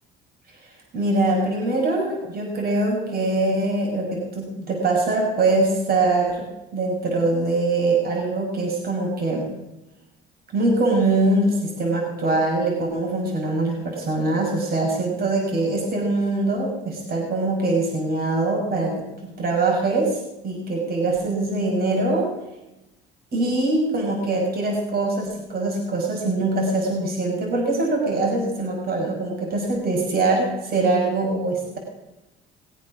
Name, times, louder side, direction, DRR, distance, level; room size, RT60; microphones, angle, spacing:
voice 1, 0.6-6.5 6.7-9.5 10.5-22.3 23.3-31.8, right 2 dB, 50° right, -1 dB, 5.4 m, -23 dB
20.5 x 8.5 x 6.2 m, 0.98 s
supercardioid pair, 90°, 20 cm